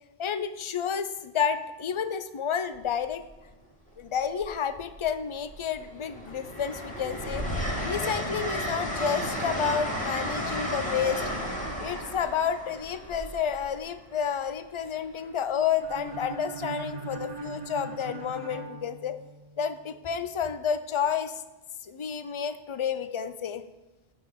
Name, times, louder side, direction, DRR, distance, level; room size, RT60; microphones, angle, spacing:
voice 1, 0.2-3.2 4.0-7.4 7.8-11.2 11.8-19.2 19.6-21.4 21.8-23.6, left 7 dB, 40° left, 11 dB, 0.4 m, -30 dB
Train, 2.7-3.0 4.3-5.1 5.5-14.2 15.8-16.1, equal, 5° left, 1.9 m, -33 dB
sound 1, 15.8-19.7, right 4 dB, 40° right, 1.0 m, -40 dB
7.8 x 5.8 x 7.3 m, 1.0 s
omnidirectional pair, 1.1 m